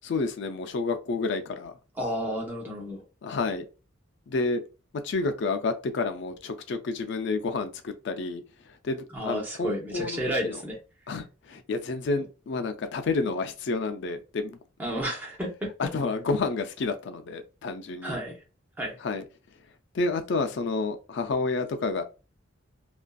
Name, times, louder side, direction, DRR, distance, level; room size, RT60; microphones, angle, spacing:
voice 1, 0.0-1.8 3.2-3.7 4.3-4.6 5.0-10.6 11.1-14.6 15.8-18.2 19.0-19.2 19.9-22.0, left 3 dB, 60° left, 0.4 m, -30 dB
voice 2, 2.0-3.0 9.1-10.8 14.8-15.7 18.0-18.3 18.8-19.0, equal, 10° right, 0.7 m, -31 dB
2.5 x 2.3 x 2.2 m
head